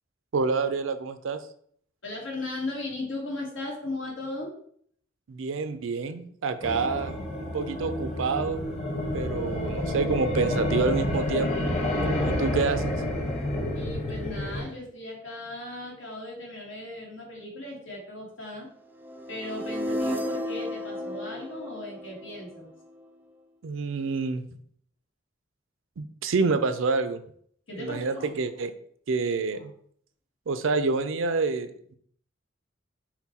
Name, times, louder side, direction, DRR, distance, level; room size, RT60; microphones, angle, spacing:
voice 1, 0.3-1.4 5.3-8.6 9.1-11.5 12.2-13.0 23.6-24.4 26.0-27.2 27.8-28.7 29.1-29.7 30.5-32.0, right 4 dB, 85° right, 11 dB, 0.5 m, -28 dB
voice 2, 2.0-4.5 13.7-18.7 19.3-22.7 27.7-28.4, left 2 dB, 85° left, -2 dB, 1.4 m, -37 dB
sound 1, 6.6-14.6, left 1 dB, 35° left, 1.0 m, -29 dB
sound 2, 19.0-23.0, left 1 dB, 10° right, 0.3 m, -33 dB
5.8 x 2.2 x 4.1 m, 0.62 s
head